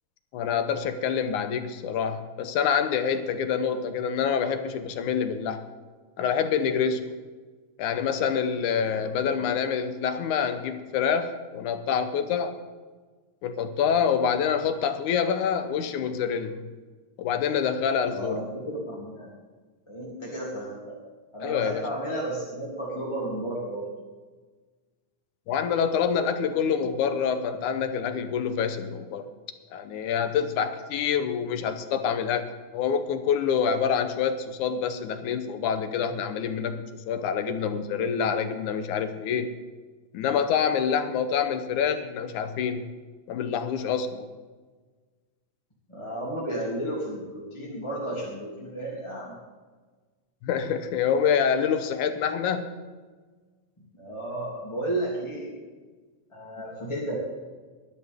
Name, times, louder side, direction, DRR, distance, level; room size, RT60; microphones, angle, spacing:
voice 1, 0.3-5.6 6.2-7.2 7.8-12.6 13.4-16.6 17.2-18.4 21.4-21.8 25.5-29.3 29.7-32.5 32.7-39.5 40.1-42.8 43.3-44.3 50.4-52.7, left 7 dB, 70° left, 9 dB, 2.3 m, -26 dB
voice 2, 8.9-9.5 18.0-19.3 19.9-21.0 21.3-23.9 45.9-49.3 53.9-55.5 56.3-57.1, right 1 dB, 10° left, -6 dB, 2.3 m, -33 dB
20.5 x 12.0 x 3.6 m, 1.4 s
omnidirectional pair, 3.8 m